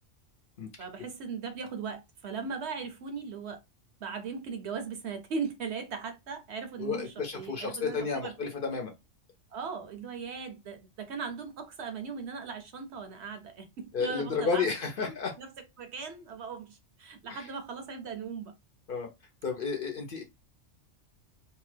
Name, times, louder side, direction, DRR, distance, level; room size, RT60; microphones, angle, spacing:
voice 1, 0.8-3.6 4.0-8.3 9.5-14.6 15.0-15.5 15.8-18.5, right 5 dB, 65° right, 0.9 m, -38 dB
voice 2, 6.8-8.9 13.9-15.3 17.3-17.5 18.9-19.1 19.4-20.2, left 5 dB, 50° left, 0.8 m, -32 dB
2.7 x 2.3 x 3.3 m
omnidirectional pair, 1.3 m